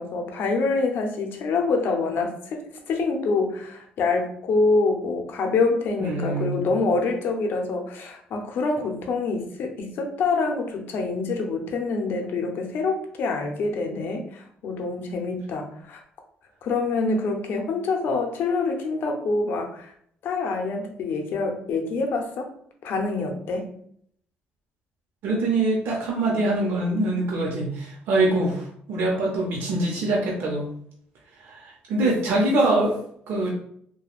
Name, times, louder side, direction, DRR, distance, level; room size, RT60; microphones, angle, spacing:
voice 1, 0.0-16.0 16.6-19.9 20.2-22.5 22.8-23.8, left 3 dB, 70° left, 3 dB, 0.6 m, -26 dB
voice 2, 6.0-6.7 25.2-30.7 31.4-33.0 33.3-33.5, right 2 dB, 75° right, -2 dB, 0.6 m, -24 dB
3.0 x 2.2 x 2.4 m, 0.64 s
cardioid pair, 90°, 4 cm